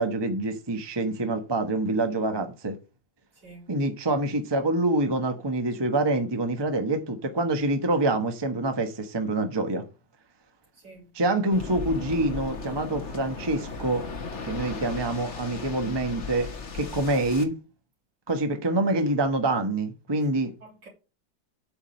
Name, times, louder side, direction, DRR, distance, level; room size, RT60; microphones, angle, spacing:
voice 1, 0.0-2.8 3.7-9.8 11.1-14.0 14.4-17.5 18.3-20.5, right 2 dB, 15° right, 1.0 m, -26 dB
voice 2, 3.3-3.7 10.7-11.1 18.8-19.1 20.6-20.9, right 3 dB, 70° right, 4.0 m, -47 dB
Waves surf, 11.5-17.4, left 4 dB, 40° left, 1.6 m, -36 dB
8.3 x 5.0 x 7.5 m
omnidirectional pair, 1.9 m